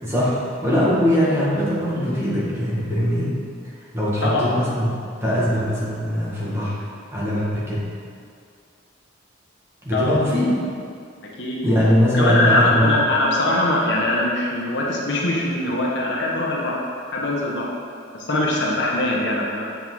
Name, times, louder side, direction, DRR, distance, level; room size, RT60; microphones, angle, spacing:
voice 1, 0.0-3.4 3.8-4.9 5.2-6.8 7.1-7.8 9.8-10.5 11.6-12.9, equal, 15° right, -8 dB, 1.8 m, -21 dB
voice 2, 12.1-16.8 17.1-17.7 18.1-19.7, left 1 dB, 70° left, -3 dB, 1.2 m, -22 dB
7.8 x 5.3 x 3.9 m, 2.3 s
head